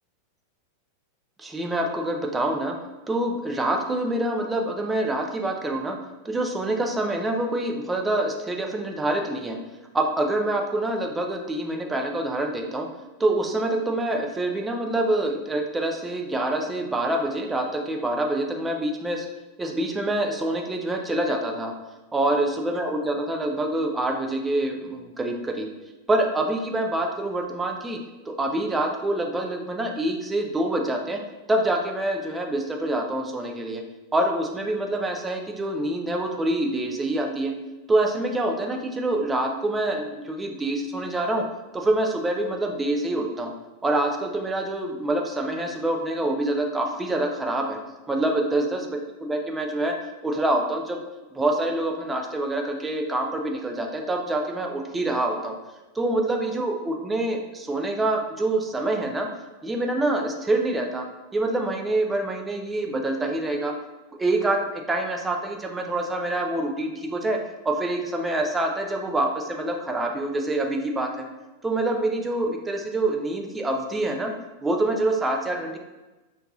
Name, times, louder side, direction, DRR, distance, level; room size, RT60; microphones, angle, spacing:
voice 1, 1.4-2.8 3.1-6.0 6.2-9.6 9.9-12.9 13.2-19.3 19.6-21.7 22.1-25.7 26.1-28.0 28.3-31.2 31.5-33.8 34.1-37.5 37.9-41.4 41.7-43.5 43.8-47.8 48.1-50.0 50.2-51.0 51.3-55.5 56.0-59.3 59.6-61.0 61.3-63.7 64.1-67.4 67.6-71.3 71.6-74.3 74.6-75.8, right 1 dB, 10° right, 2 dB, 0.4 m, -26 dB
4.5 x 2.6 x 2.4 m, 1.1 s
figure-of-eight pair, 90°, 0 cm